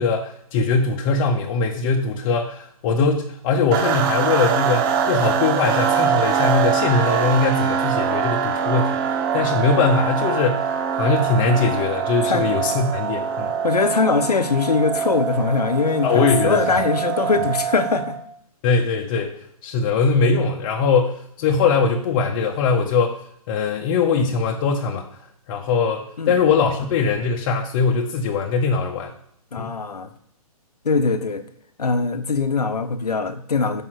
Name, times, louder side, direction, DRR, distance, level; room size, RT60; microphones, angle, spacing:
voice 1, 0.0-13.5 16.0-16.6 18.6-19.4 19.6-23.2 23.5-25.1 25.5-29.1 29.6-29.8, left 4 dB, 35° left, 0 dB, 1.0 m, -21 dB
sound 1, 3.7-18.3, right 7 dB, 35° right, 0.9 m, -23 dB
voice 2, 13.6-18.2 26.2-26.3 29.5-30.1 30.8-31.4 31.8-33.8, left 4 dB, 85° left, 9 dB, 1.0 m, -21 dB
5.7 x 5.4 x 6.3 m, 0.71 s
hypercardioid pair, 135°, 19 cm